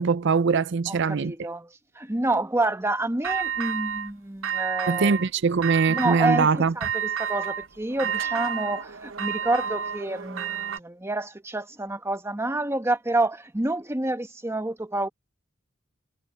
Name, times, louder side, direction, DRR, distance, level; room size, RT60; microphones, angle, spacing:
voice 1, 0.0-1.3 4.9-6.7, right 5 dB, 60° right, 0.5 m, -22 dB
voice 2, 0.9-5.2 5.9-15.1, right 2 dB, 15° right, 1.1 m, -28 dB
sound 1, 3.2-4.1 4.4-5.3 5.6-6.5 6.8-10.8, right 8 dB, 80° right, 1.0 m, -30 dB
head